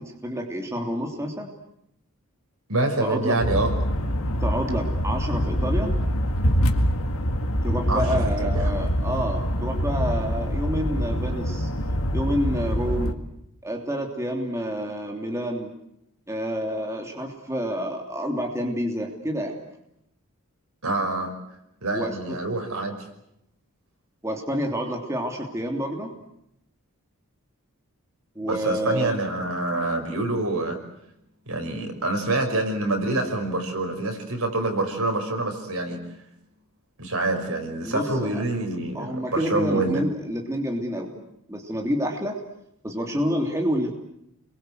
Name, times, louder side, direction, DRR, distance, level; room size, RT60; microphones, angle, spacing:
voice 1, 0.0-1.5 3.0-3.4 4.4-5.9 7.6-11.7 12.1-13.2 13.6-15.7 16.3-19.6 21.9-22.4 24.2-26.1 28.3-29.2 37.8-38.4 38.9-41.1 41.5-42.4 42.8-43.9, equal, 15° right, 1 dB, 3.1 m, -28 dB
voice 2, 2.7-3.7 7.9-8.7 20.8-21.3 21.8-23.0 28.5-30.8 31.5-36.0 37.0-40.0, right 2 dB, 75° right, 4 dB, 6.0 m, -26 dB
sound 1, 3.4-13.1, equal, 70° left, 2.0 m, -25 dB
29.5 x 23.0 x 8.0 m, 0.80 s
head